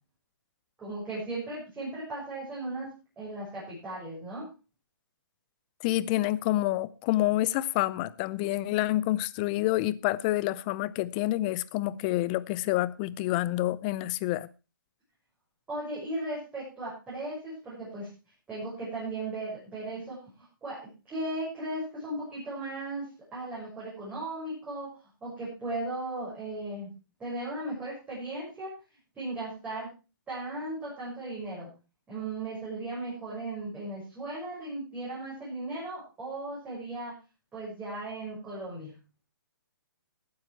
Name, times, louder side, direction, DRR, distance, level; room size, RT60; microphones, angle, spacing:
voice 1, 0.8-2.9 3.1-4.5 15.7-18.1 18.5-20.2 20.6-23.0 23.3-24.9 25.2-26.9 27.2-28.7 29.1-29.9 30.3-31.7 32.1-37.1 37.5-38.9, right 2 dB, 10° right, -8 dB, 6.9 m, -36 dB
voice 2, 5.8-14.5, left 16 dB, 25° left, 19 dB, 0.5 m, -28 dB
15.0 x 9.6 x 4.6 m, 0.32 s
hypercardioid pair, 155°, 11 cm